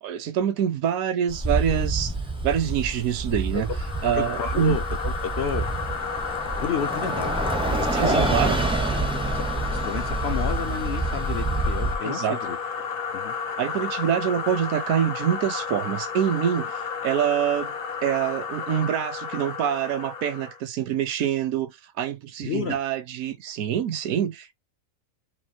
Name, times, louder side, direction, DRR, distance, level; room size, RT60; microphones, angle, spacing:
voice 1, 0.0-2.1 2.4-3.7 4.0-4.8 7.9-8.6 12.0-12.4 13.6-17.7 18.0-24.5, right 9 dB, 70° right, 1.0 m, -26 dB
Bus, 1.3-12.0, right 2 dB, 5° right, 0.4 m, -27 dB
sound 1, 3.6-20.6, left 6 dB, 80° left, 1.4 m, -32 dB
voice 2, 4.1-5.7 6.5-7.4 7.6-8.3 9.3-12.6 13.1-13.3 22.4-22.8, left 7 dB, 65° left, 0.6 m, -31 dB
5.4 x 2.5 x 2.7 m
omnidirectional pair, 1.6 m